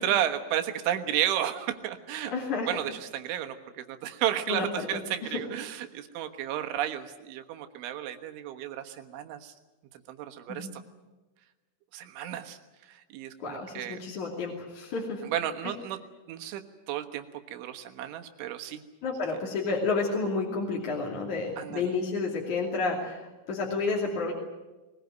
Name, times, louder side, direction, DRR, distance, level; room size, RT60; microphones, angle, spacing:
voice 1, 0.0-2.3 2.7-9.5 10.1-10.8 11.9-12.6 12.9-14.0 15.3-16.0 16.3-16.6 16.9-18.8 21.6-21.9, right 11 dB, 90° right, 7 dB, 3.9 m, -32 dB
voice 2, 2.2-2.7 4.5-4.7 4.9-5.4 10.5-10.7 13.4-15.2 15.6-15.7 19.0-24.3, left 4 dB, 45° left, -2 dB, 3.7 m, -31 dB
21.5 x 20.5 x 9.3 m, 1.2 s
omnidirectional pair, 5.3 m